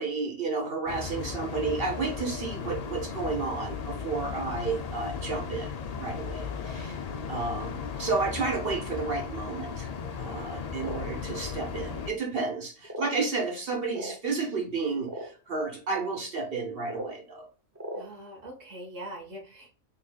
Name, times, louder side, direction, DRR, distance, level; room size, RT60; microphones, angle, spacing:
voice 1, 0.0-7.0 7.3-9.9 10.2-17.5, right 4 dB, 50° right, 1.3 m, -32 dB
sound 1, 0.9-12.1, left 6 dB, 60° left, 0.4 m, -36 dB
sound 2, 10.7-11.0 11.9-12.0 12.8-13.2 13.9-14.2 15.0-15.3 16.8-17.1 17.7-18.0, right 1 dB, 15° right, 0.6 m, -37 dB
voice 2, 17.9-19.7, right 1 dB, 85° right, 1.8 m, -42 dB
4.0 x 3.5 x 2.3 m
omnidirectional pair, 1.3 m